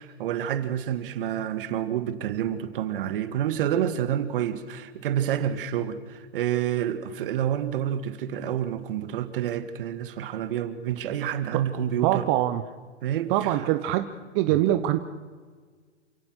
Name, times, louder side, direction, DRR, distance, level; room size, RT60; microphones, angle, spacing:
voice 1, 0.0-12.3 13.0-13.7 14.5-14.6, right 10 dB, 50° right, 1.9 m, -28 dB
voice 2, 12.0-12.6 13.3-14.1 14.3-15.0, right 14 dB, 30° right, 0.9 m, -23 dB
28.5 x 16.5 x 6.3 m
hypercardioid pair, 135°, 34 cm